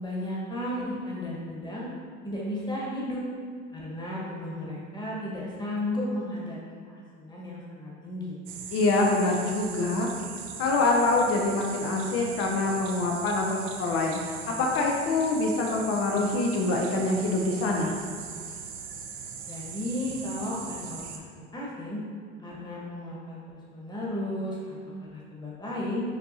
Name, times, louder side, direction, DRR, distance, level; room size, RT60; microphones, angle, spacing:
voice 1, 0.0-1.9 2.2-3.2 3.7-6.6 6.9-8.4 19.5-21.2 21.5-22.0 22.4-23.4 23.7-26.0, left 1 dB, 10° left, -5 dB, 1.3 m, -34 dB
sound 1, 8.5-21.2, right 6 dB, 50° right, 0.6 m, -40 dB
voice 2, 8.7-10.1 10.6-17.9, left 2 dB, 35° left, 0 dB, 0.6 m, -25 dB
5.8 x 3.4 x 2.7 m, 2.1 s
hypercardioid pair, 75°, 41 cm